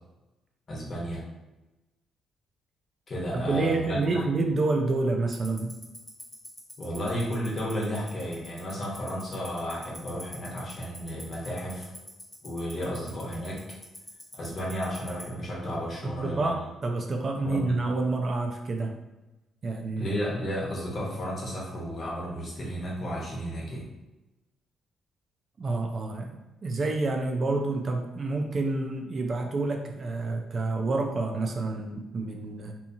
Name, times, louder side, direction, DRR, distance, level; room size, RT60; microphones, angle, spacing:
voice 1, 0.7-1.2 3.1-4.2 6.8-11.9 12.4-13.6 14.3-16.5 17.4-17.8 20.0-23.8, equal, 45° left, -4 dB, 1.0 m, -33 dB
voice 2, 3.3-5.7 16.0-18.9 19.6-20.1 25.6-26.4 26.6-32.7, right 3 dB, 45° right, 3 dB, 0.4 m, -28 dB
Tick-tock, 5.3-15.2, left 1 dB, 15° left, 0.9 m, -42 dB
2.7 x 2.4 x 2.7 m, 1.0 s
cardioid pair, 90°, 0 cm